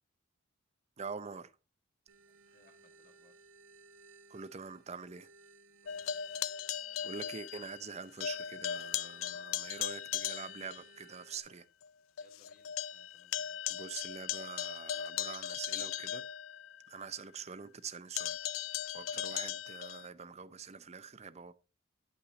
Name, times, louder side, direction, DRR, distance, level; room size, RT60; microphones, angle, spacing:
voice 1, 1.0-1.5 4.3-5.3 7.0-11.6 13.7-16.3 16.9-18.4 18.9-21.6, right 5 dB, 35° right, 0.6 m, -45 dB
sound 1, 2.1-11.4, right 4 dB, 70° right, 1.2 m, -62 dB
voice 2, 2.5-3.3 5.8-6.2 12.2-13.6 17.0-17.1 19.1-19.3, left 3 dB, 45° left, 2.0 m, -68 dB
sound 2, 5.9-7.9 8.2-10.8 11.3-11.4 11.8-11.9 12.2-17.0 18.2-20.1, left 10 dB, 80° left, 0.4 m, -38 dB
9.9 x 5.7 x 4.0 m
head